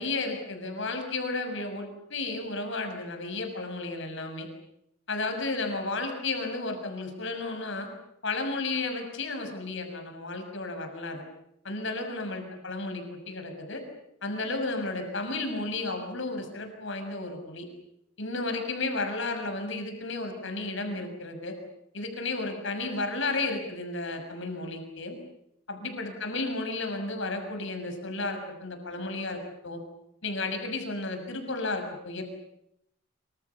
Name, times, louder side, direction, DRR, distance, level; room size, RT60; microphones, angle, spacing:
voice 1, 0.0-4.5 5.1-7.9 8.2-11.2 11.6-13.8 14.2-17.7 18.2-21.5 21.9-25.2 25.7-29.8 30.2-32.2, left 3 dB, 55° left, 6 dB, 6.5 m, -33 dB
27.0 x 26.0 x 7.0 m, 0.80 s
head